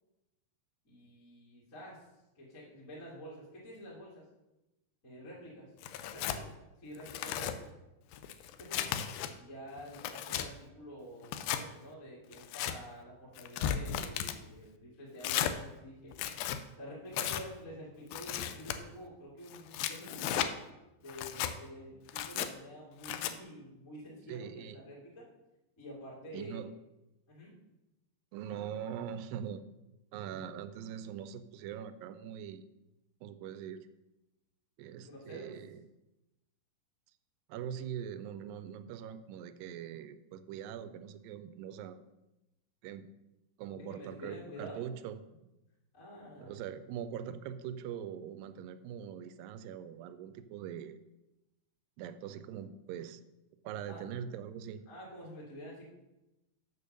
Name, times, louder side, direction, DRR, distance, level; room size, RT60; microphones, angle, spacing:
voice 1, 0.8-2.1 2.3-4.2 5.0-5.7 6.1-6.5 6.8-7.7 8.6-9.0 9.4-16.1 16.8-20.5 21.0-25.3 25.8-26.6 27.3-27.5 35.0-35.6 43.8-44.9 45.9-46.5 53.9-54.0 54.9-55.9, equal, 25° left, -6 dB, 2.0 m, -48 dB
Tearing, 5.8-6.4 7.0-7.6 8.1-9.3 9.8-10.5 11.2-11.6 12.3-12.8 13.4-14.4 15.2-15.6 16.1-16.6 17.1-17.4 18.1-18.8 19.5-20.5 21.1-21.5 22.1-22.5 23.0-23.3, left 10 dB, 80° left, 2.3 m, -35 dB
voice 2, 24.3-24.8 26.3-26.7 28.3-29.7 30.1-32.7 33.2-33.8 34.8-35.8 37.5-42.0 42.8-43.1 43.6-45.2 46.4-51.0 52.0-53.2 53.6-54.8, right 9 dB, 85° right, 11 dB, 2.0 m, -42 dB
6.9 x 6.9 x 6.5 m, 0.97 s
omnidirectional pair, 4.6 m